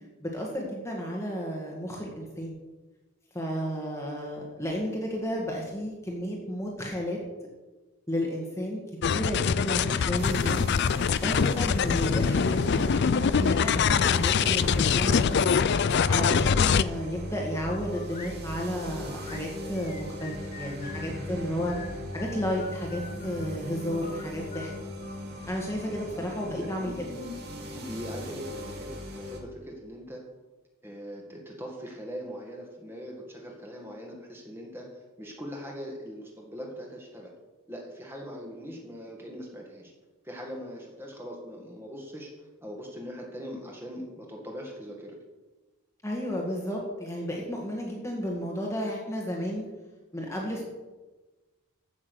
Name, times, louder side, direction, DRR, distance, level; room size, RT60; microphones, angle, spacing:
voice 1, 0.2-2.6 3.3-7.2 8.1-8.8 9.1-10.7 11.2-15.5 16.1-21.7 22.1-24.7 25.5-27.1 46.0-49.6 50.1-50.6, equal, 15° left, -2 dB, 1.6 m, -32 dB
sound 1, 9.0-16.8, left 6 dB, 50° left, 0.4 m, -24 dB
sound 2, 10.2-29.4, left 1 dB, 45° right, 2.5 m, -39 dB
sound 3, 17.6-18.4 19.0-21.1 21.7-23.5 24.0-25.8, left 5 dB, 30° left, 1.2 m, -46 dB
voice 2, 26.6-30.2 30.8-37.3 37.7-39.9 40.2-42.3 42.6-45.2, equal, 10° right, 0 dB, 1.9 m, -41 dB
15.0 x 6.2 x 6.3 m, 1.2 s
head